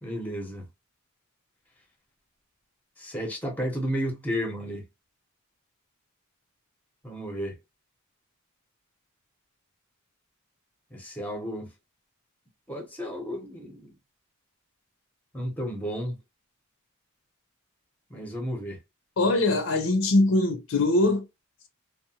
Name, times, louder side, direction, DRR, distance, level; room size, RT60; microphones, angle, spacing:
voice 1, 0.0-0.6 3.0-4.8 7.0-7.6 10.9-11.7 12.7-13.9 15.3-16.2 18.1-18.8, equal, 10° left, 0.7 m, -32 dB
voice 2, 19.2-21.3, left 2 dB, 70° left, 0.6 m, -22 dB
2.7 x 2.1 x 2.6 m
head